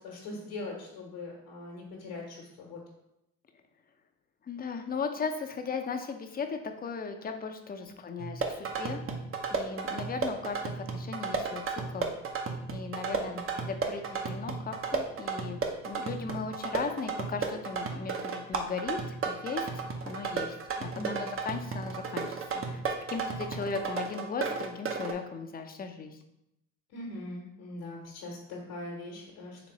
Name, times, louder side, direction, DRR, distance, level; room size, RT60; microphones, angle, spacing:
voice 1, 0.0-2.8 7.8-7.9 13.1-13.4 20.9-21.3 26.9-29.7, left 2 dB, 70° left, -3 dB, 1.1 m, -41 dB
voice 2, 4.5-9.0 9.5-12.1 12.7-15.6 15.8-19.7 20.1-22.3 22.5-22.8 23.1-26.2, left 5 dB, 25° left, 6 dB, 0.5 m, -37 dB
sound 1, 8.2-25.1, right 5 dB, 35° right, 0.7 m, -34 dB
4.0 x 3.4 x 3.0 m, 0.83 s
hypercardioid pair, 65°, 37 cm